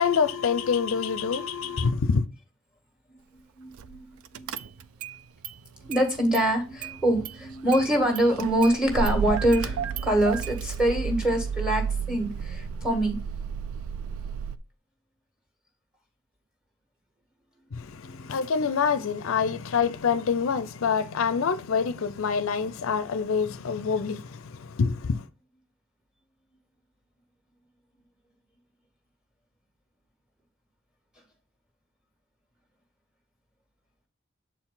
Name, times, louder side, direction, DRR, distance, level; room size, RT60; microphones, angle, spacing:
voice 1, 0.0-2.2 17.7-25.3, left 6 dB, 70° left, 0.5 m, -26 dB
voice 2, 1.6-2.0 3.1-4.5 5.8-13.2 17.9-18.7, right 1 dB, 5° right, 1.6 m, -25 dB
Car / Engine starting, 3.8-4.0 4.3-5.2 5.4-6.5 6.8-14.6, right 6 dB, 85° right, 0.4 m, -32 dB
7.4 x 4.5 x 3.8 m
head